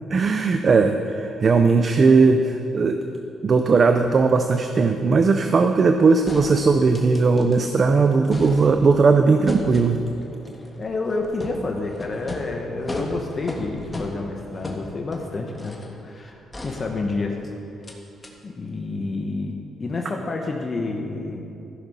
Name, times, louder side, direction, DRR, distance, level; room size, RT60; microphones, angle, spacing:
voice 1, 0.1-3.0 3.4-10.0, right 4 dB, 40° right, 7 dB, 0.5 m, -18 dB
sound 1, 6.3-7.8 8.1-9.0 9.5-16.0 16.5-17.4 17.8-18.0 18.2-18.3, left 1 dB, 20° left, 1.5 m, -37 dB
voice 2, 10.8-15.7 16.0-16.4 16.6-17.3 17.9-18.0 18.4-19.5 19.8-21.4, left 3 dB, 35° left, 1 dB, 1.0 m, -29 dB
14.5 x 6.1 x 5.4 m, 2.7 s
cardioid pair, 90°, 0 cm